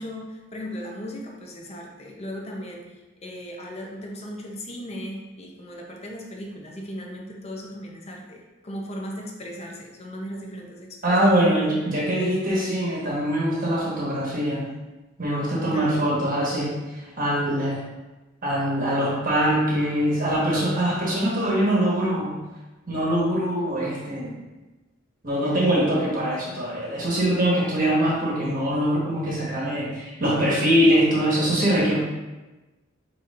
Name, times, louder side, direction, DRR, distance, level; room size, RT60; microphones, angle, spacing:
voice 1, 0.0-11.5 15.7-16.1, equal, 30° left, 0 dB, 0.6 m, -37 dB
voice 2, 11.0-14.7 15.2-16.8 17.2-17.8 18.4-22.4 22.9-24.3 25.2-32.0, equal, 45° right, -6 dB, 1.3 m, -23 dB
4.3 x 4.2 x 2.5 m, 1.1 s
head